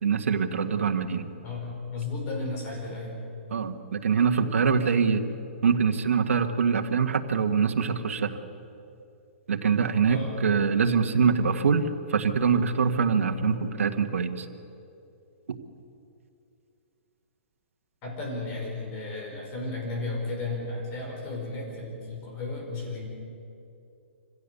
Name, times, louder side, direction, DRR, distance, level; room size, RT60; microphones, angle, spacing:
voice 1, 0.0-1.3 3.5-5.3 5.6-8.4 9.5-14.5, right 6 dB, 85° right, 6 dB, 1.7 m, -24 dB
voice 2, 1.4-3.2 10.1-10.5 18.0-23.1, left 3 dB, 25° left, 0 dB, 5.2 m, -34 dB
25.5 x 16.0 x 8.4 m, 2.7 s
hypercardioid pair, 165°, 7 cm